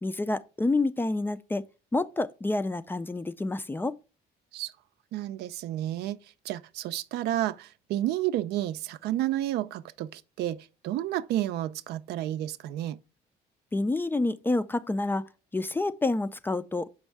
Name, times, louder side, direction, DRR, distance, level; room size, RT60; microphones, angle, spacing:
voice 1, 0.0-1.6 1.9-4.0 13.7-15.2 15.5-16.9, left 2 dB, 10° left, 0.3 m, -28 dB
voice 2, 5.1-6.2 6.4-13.0, right 13 dB, 80° right, 0.5 m, -31 dB
6.2 x 5.3 x 3.3 m
cardioid pair, 110°, 17 cm